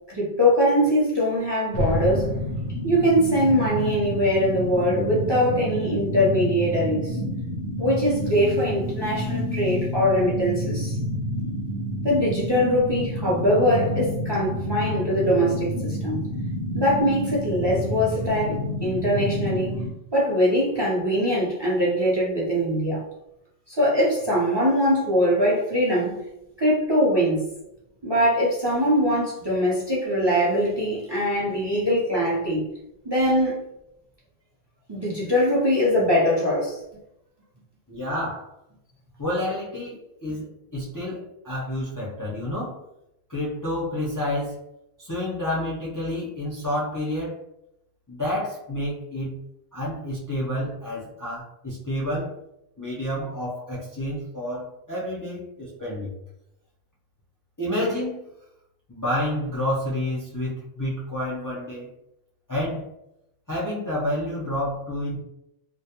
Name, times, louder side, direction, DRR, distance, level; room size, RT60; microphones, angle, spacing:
voice 1, 0.1-2.3 2.8-7.2 7.8-11.0 12.0-16.2 16.7-19.8 20.1-23.0 23.7-26.2 26.6-27.5 28.0-32.7 33.0-33.7 34.9-36.8, equal, 35° right, -6 dB, 0.5 m, -22 dB
sound 1, 1.7-19.9, equal, 65° right, 0.8 m, -29 dB
voice 2, 37.9-38.5 39.2-42.8 43.3-44.6 45.0-47.4 48.1-49.3 49.7-52.3 52.8-56.1 57.6-58.2 58.9-61.9 62.5-62.9 63.5-65.2, left 1 dB, 30° left, -7 dB, 0.4 m, -29 dB
2.2 x 2.1 x 2.8 m, 0.85 s
omnidirectional pair, 1.0 m